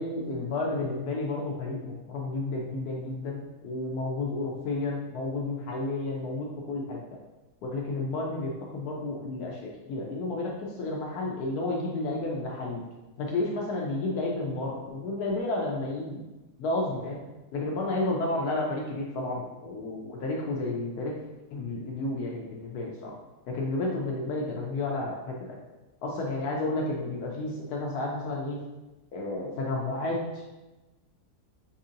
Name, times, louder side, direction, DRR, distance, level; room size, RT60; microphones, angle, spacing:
voice 1, 0.0-7.0 7.6-12.8 13.2-16.2 16.6-17.2 17.5-21.1 21.5-23.1 23.5-25.6 26.0-28.6 29.1-30.4, left 2 dB, 75° left, -2 dB, 1.1 m, -31 dB
5.4 x 2.7 x 2.5 m, 1.1 s
omnidirectional pair, 1.7 m